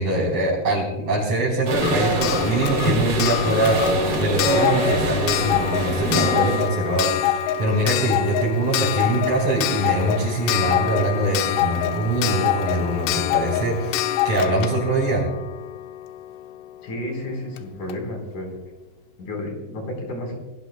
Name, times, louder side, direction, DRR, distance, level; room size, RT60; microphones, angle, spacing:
voice 1, 0.0-15.2, right 2 dB, 35° right, -6 dB, 4.5 m, -23 dB
sound 1, 1.7-6.7, right 2 dB, 65° right, 4.7 m, -24 dB
Clock, 1.8-16.4 17.6-17.7 17.9-18.0, left 12 dB, 85° left, 3.0 m, -25 dB
voice 2, 16.8-18.5 19.2-20.3, left 1 dB, 50° left, 1 dB, 5.5 m, -31 dB
28.0 x 18.0 x 2.2 m, 1.0 s
omnidirectional pair, 4.7 m